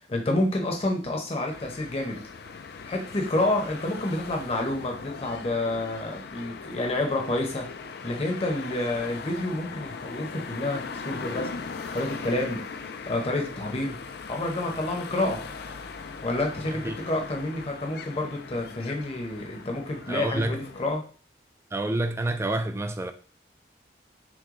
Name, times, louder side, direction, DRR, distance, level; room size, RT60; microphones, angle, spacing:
voice 1, 0.1-2.2 2.8-7.7 8.0-11.5 11.9-12.6 13.1-14.0 14.3-15.4 16.2-21.0, left 1 dB, 35° left, 0.9 m, -29 dB
sound 1, 1.5-20.9, left 5 dB, 60° left, 0.4 m, -39 dB
voice 2, 20.1-20.6 21.7-23.1, right 2 dB, 15° right, 0.3 m, -28 dB
6.1 x 2.2 x 3.7 m
head